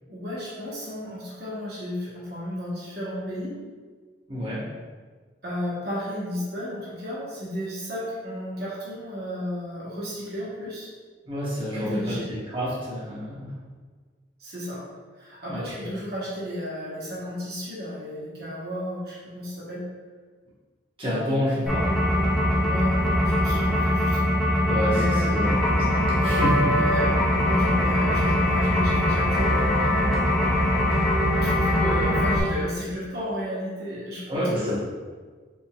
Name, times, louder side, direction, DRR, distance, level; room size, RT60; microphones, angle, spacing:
voice 1, 0.1-3.5 5.4-10.9 11.7-12.3 14.4-14.8 15.1-19.8 22.6-25.6 26.7-29.9 31.3-34.8, equal, 55° right, -7 dB, 1.1 m, -33 dB
voice 2, 4.3-4.7 11.2-13.6 15.5-15.9 21.0-22.0 24.6-26.9 34.3-34.8, equal, 30° right, -9 dB, 1.1 m, -28 dB
sound 1, 21.7-32.4, left 1 dB, ahead, 0.5 m, -22 dB
5.0 x 3.7 x 2.3 m, 1.5 s
head